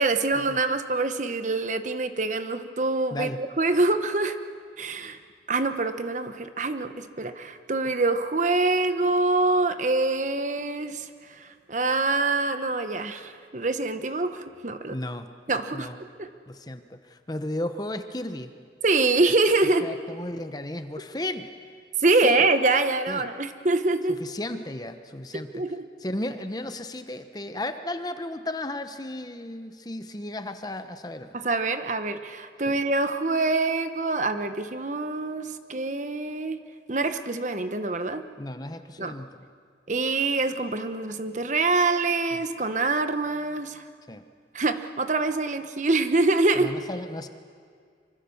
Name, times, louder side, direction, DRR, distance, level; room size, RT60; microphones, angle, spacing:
voice 1, 0.0-4.4 4.8-5.2 5.5-11.1 11.4-14.9 15.5-15.9 16.2-16.3 18.8-19.9 22.0-24.2 25.3-25.8 31.3-36.6 36.9-38.2 39.0-39.1 39.9-43.8 44.5-46.7, right 3 dB, 40° right, 9 dB, 1.1 m, -25 dB
voice 2, 3.1-3.4 14.9-15.3 15.7-16.0 16.5-18.5 19.8-21.5 22.2-22.5 23.1-23.3 24.2-25.6 26.0-31.3 32.7-32.8 38.4-39.3 44.1-44.2 46.6-47.3, left 1 dB, 20° left, 9 dB, 1.0 m, -34 dB
25.5 x 24.5 x 7.1 m, 2.1 s
head